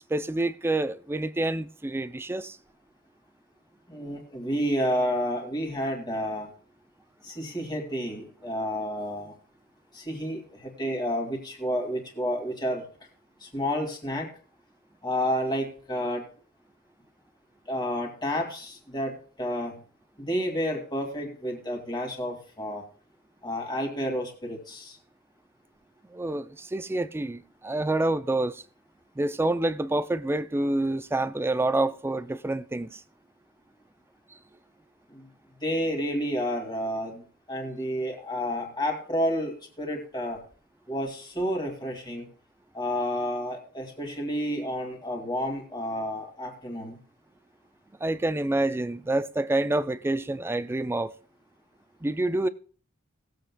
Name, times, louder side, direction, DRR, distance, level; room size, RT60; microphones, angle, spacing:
voice 1, 0.1-2.6 26.1-28.6 29.2-33.0 48.0-51.1 52.0-52.5, right 2 dB, 10° right, 0.4 m, -27 dB
voice 2, 3.9-6.5 7.2-9.4 9.9-12.8 13.4-14.3 15.0-16.2 17.7-19.8 20.2-22.8 23.4-25.0 35.1-35.3 35.6-37.2 37.5-40.4 40.9-42.3 42.7-47.0, equal, 20° left, 2.2 m, -30 dB
19.5 x 7.8 x 2.2 m
head